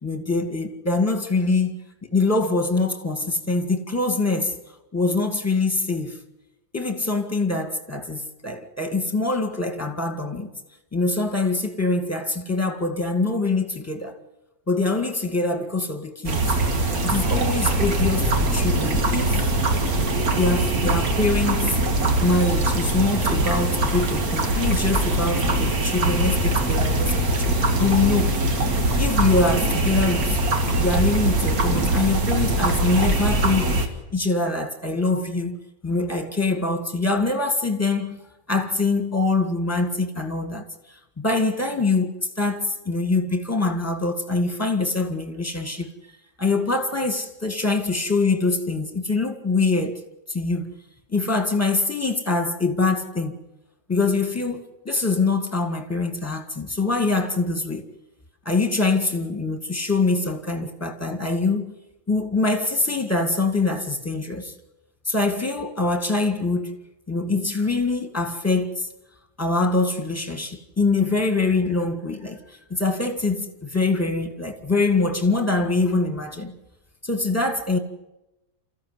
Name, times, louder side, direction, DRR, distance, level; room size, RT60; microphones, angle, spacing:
voice 1, 0.0-4.5 4.9-6.2 6.7-10.5 10.9-14.2 14.7-16.4 17.0-19.5 20.3-21.8 22.2-28.4 29.0-33.8 34.1-35.6 35.8-38.2 38.5-42.1 42.4-45.9 46.4-50.0 50.3-50.7 51.1-53.4 53.9-57.9 58.5-61.7 62.1-64.5 65.1-66.7 67.1-68.9 69.4-76.5 77.0-77.8, left 3 dB, 10° left, 1.9 m, -24 dB
sound 1, 16.3-33.9, right 2 dB, 80° right, 2.4 m, -22 dB
28.0 x 14.5 x 9.6 m
omnidirectional pair, 1.5 m